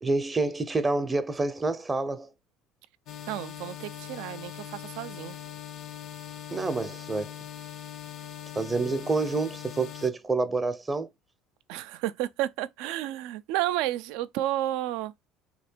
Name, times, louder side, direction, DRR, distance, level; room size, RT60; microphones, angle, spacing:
voice 1, 0.0-2.3 6.5-7.3 8.5-11.1, right 3 dB, 20° right, 0.6 m, -28 dB
sound 1, 3.1-10.1, left 10 dB, 60° left, 0.7 m, -41 dB
voice 2, 3.3-5.4 11.7-15.1, right 14 dB, 75° right, 0.3 m, -31 dB
3.3 x 2.8 x 4.3 m
hypercardioid pair, 75°, 0 cm